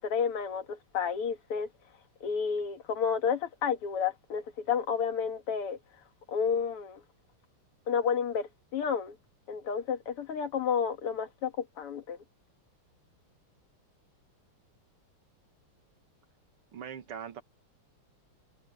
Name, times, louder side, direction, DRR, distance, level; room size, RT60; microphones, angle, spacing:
voice 1, 0.0-1.7 2.2-5.8 6.3-7.0 7.9-9.2 9.5-12.2, left 6 dB, 85° left, 2.6 m, -31 dB
voice 2, 16.7-17.4, right 8 dB, 85° right, 2.5 m, -41 dB
omnidirectional pair, 2.4 m